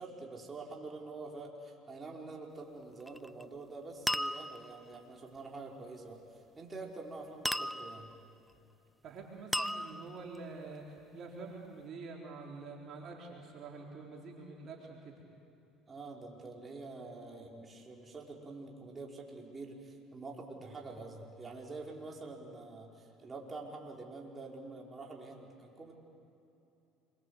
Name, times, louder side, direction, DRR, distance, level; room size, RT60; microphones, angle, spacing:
voice 1, 0.0-8.1 15.9-25.9, right 3 dB, 25° right, -1 dB, 5.2 m, -46 dB
sound 1, 3.0-3.4 4.1-4.8 7.4-8.2 9.5-10.4, equal, ahead, 0.7 m, -35 dB
voice 2, 9.0-15.2, right 3 dB, 55° right, -1 dB, 4.1 m, -47 dB
28.5 x 24.5 x 8.3 m, 2.8 s
supercardioid pair, 85°, 0 cm